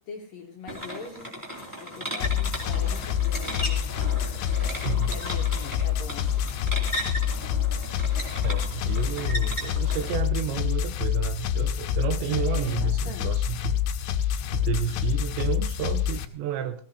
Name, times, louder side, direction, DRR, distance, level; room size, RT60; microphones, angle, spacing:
voice 1, 0.0-1.3 1.8-3.9 4.2-6.5 12.3-13.5, left 4 dB, 60° left, 1 dB, 2.6 m, -42 dB
sound 1, 0.7-10.2, equal, 5° right, 2.8 m, -36 dB
sound 2, 2.2-16.3, left 9 dB, 80° left, 3.2 m, -27 dB
voice 2, 8.4-13.8 14.5-16.8, right 10 dB, 80° right, 8 dB, 2.8 m, -31 dB
19.5 x 16.5 x 2.8 m, 0.43 s
omnidirectional pair, 5.8 m